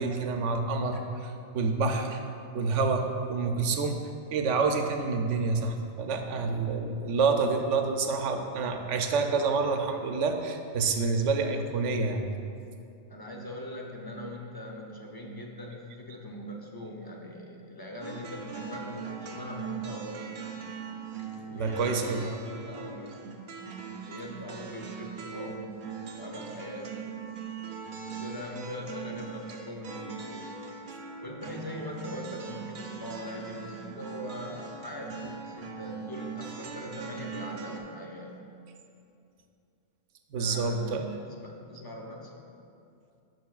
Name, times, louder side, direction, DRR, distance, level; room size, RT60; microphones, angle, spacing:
voice 1, 0.0-2.2 2.5-4.0 4.3-12.3 21.5-22.2 40.3-41.0, right 4 dB, 85° right, 5 dB, 0.9 m, -28 dB
voice 2, 13.1-20.3 21.3-23.2 24.0-25.7 26.1-27.2 28.2-30.5 31.2-38.4 40.4-42.5, equal, 30° left, 0 dB, 0.4 m, -41 dB
sound 1, 18.0-37.8, right 6 dB, 55° right, 0.7 m, -41 dB
9.1 x 6.3 x 2.4 m, 2.6 s
omnidirectional pair, 1.2 m